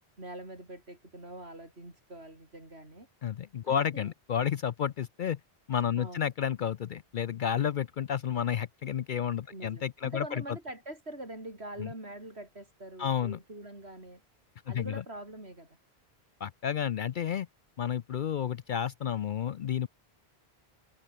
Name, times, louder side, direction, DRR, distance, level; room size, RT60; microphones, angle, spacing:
voice 1, 0.2-3.1 3.7-4.1 6.0-6.3 9.5-14.2 14.7-15.8, right 1 dB, 85° right, 7.6 m, -44 dB
voice 2, 3.2-5.4 5.7-10.4 11.8-11.9 13.0-13.4 14.7-15.0 16.4-17.5 17.8-19.9, left 9 dB, 60° left, 0.6 m, -31 dB
omnidirectional pair, 1.1 m